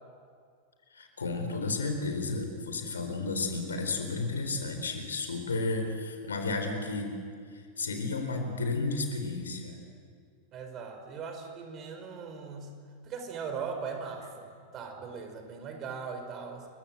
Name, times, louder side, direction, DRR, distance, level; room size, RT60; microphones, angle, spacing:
voice 1, 0.9-7.1 7.5-9.8, left 3 dB, 70° left, 6 dB, 4.2 m, -32 dB
voice 2, 10.5-12.7 13.0-16.7, right 5 dB, 30° right, 6 dB, 4.7 m, -39 dB
30.0 x 23.0 x 7.9 m, 2.1 s
figure-of-eight pair, 90°, 0 cm